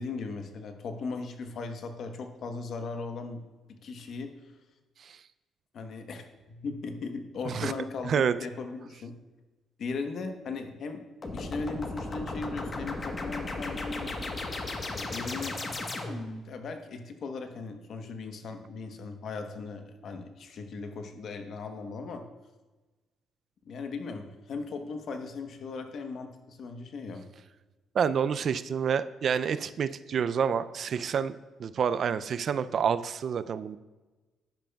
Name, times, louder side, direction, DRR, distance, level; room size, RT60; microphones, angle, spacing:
voice 1, 0.0-3.4 3.7-4.3 5.7-9.1 9.8-11.0 11.3-14.1 14.9-15.6 16.4-22.2 23.7-27.2, left 4 dB, 65° left, 6 dB, 1.0 m, -38 dB
sound 1, 11.2-16.4, left 2 dB, 35° left, 1.1 m, -35 dB
voice 2, 28.0-33.8, right 7 dB, 55° right, 14 dB, 0.3 m, -28 dB
10.5 x 10.5 x 2.3 m, 1.2 s
cardioid pair, 90°, 0 cm